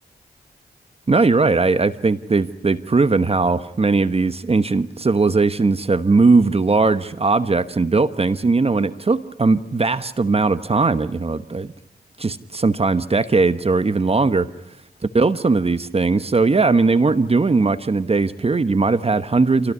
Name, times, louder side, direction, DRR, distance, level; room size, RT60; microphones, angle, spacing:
voice 1, 1.1-11.7 12.2-14.5 15.1-19.7, right 3 dB, 35° right, 12 dB, 1.1 m, -19 dB
28.0 x 18.5 x 9.6 m, 0.77 s
cardioid pair, 65°, 17 cm